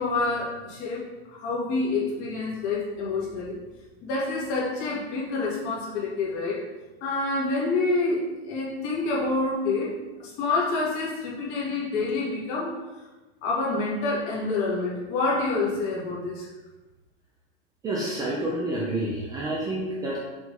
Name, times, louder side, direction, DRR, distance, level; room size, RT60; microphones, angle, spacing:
voice 1, 0.0-3.6 4.0-6.6 7.0-9.9 10.2-12.7 13.4-16.5, left 3 dB, 35° left, -5 dB, 2.2 m, -27 dB
voice 2, 17.8-20.2, right 1 dB, 10° right, -4 dB, 0.6 m, -28 dB
6.3 x 3.5 x 5.4 m, 1.2 s
supercardioid pair, 165°, 31 cm